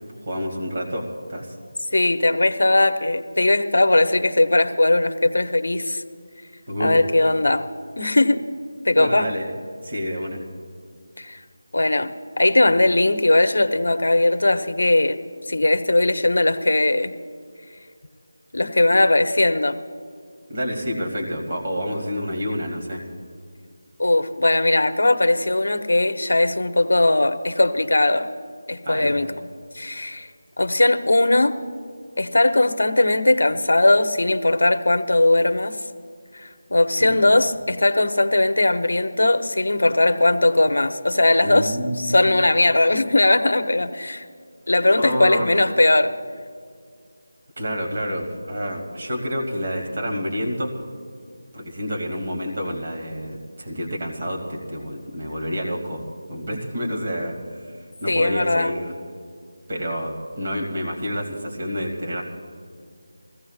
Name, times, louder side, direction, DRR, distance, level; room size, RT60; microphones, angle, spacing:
voice 1, 0.3-1.5 6.7-7.0 9.0-9.5 9.8-10.4 20.5-23.0 28.9-29.1 37.0-37.2 41.4-42.5 45.0-45.5 47.6-50.7 51.5-56.0 56.3-57.4 58.0-58.9 59.7-62.2, equal, 45° right, 0 dB, 2.2 m, -28 dB
voice 2, 1.9-6.0 6.8-7.6 8.0-8.4 8.8-9.3 11.2-11.4 11.7-12.1 12.4-15.2 15.5-17.1 18.5-19.8 24.0-28.3 28.7-29.3 29.7-30.3 30.6-31.6 32.2-35.8 36.3-44.2 44.7-46.1 58.1-58.7, left 2 dB, 80° left, 8 dB, 0.9 m, -19 dB
21.5 x 16.0 x 2.4 m, 2.2 s
figure-of-eight pair, 175°, 0 cm